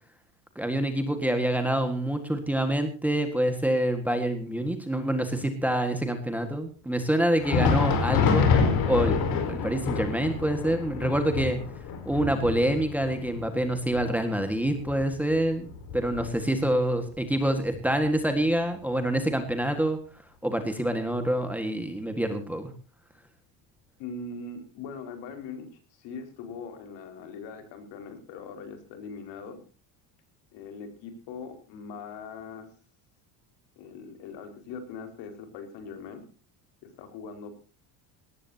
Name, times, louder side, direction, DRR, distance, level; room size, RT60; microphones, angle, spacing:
voice 1, 0.5-8.5 8.9-9.2 9.4-11.6 12.0-20.0 20.4-22.7, right 1 dB, 5° right, 6 dB, 1.6 m, -26 dB
Thunder, 7.3-16.7 17.1-17.2 17.9-18.1 19.1-19.2, left 5 dB, 50° left, 4.7 m, -27 dB
voice 2, 24.0-25.7 26.0-29.6 30.5-32.7 33.8-36.2 37.0-37.6, left 4 dB, 65° left, 7 dB, 5.0 m, -41 dB
20.5 x 18.0 x 2.8 m, 0.35 s
cardioid pair, 175°, 46 cm